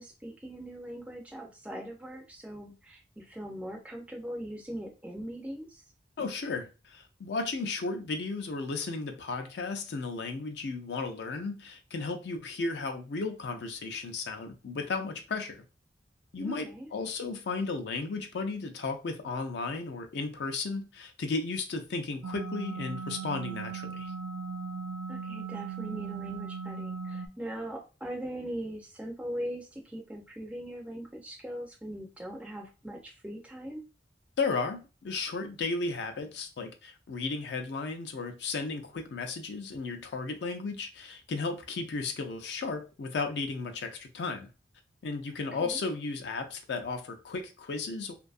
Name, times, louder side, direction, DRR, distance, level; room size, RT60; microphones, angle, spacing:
voice 1, 0.0-5.8 16.4-16.9 25.1-33.8 45.5-45.8, equal, 5° right, 0.3 m, -40 dB
voice 2, 6.2-15.6 16.3-24.1 34.4-44.5 45.0-48.1, left 4 dB, 65° left, 0.4 m, -34 dB
sound 1, 22.2-27.3, right 5 dB, 90° right, 0.4 m, -38 dB
2.6 x 2.3 x 2.4 m
head